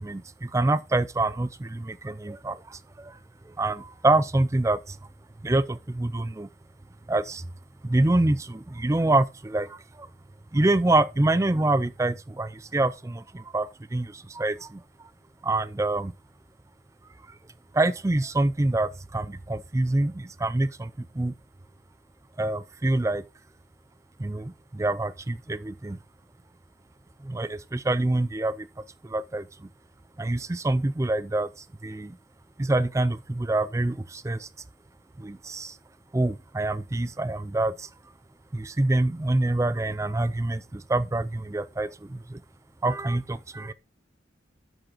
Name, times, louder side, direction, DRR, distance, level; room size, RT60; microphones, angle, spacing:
voice 1, 0.0-2.6 3.6-5.0 5.4-6.5 7.1-7.4 7.8-9.7 10.5-14.8 15.4-16.1 17.7-20.9 21.2-21.3 22.4-23.2 24.2-26.0 27.2-28.7 29.1-29.5 30.2-31.5 31.8-32.1 32.6-34.5 35.2-35.7 36.1-37.9 38.5-42.4 42.8-43.7, right 2 dB, 15° right, 0.4 m, -26 dB
7.7 x 6.4 x 4.4 m
head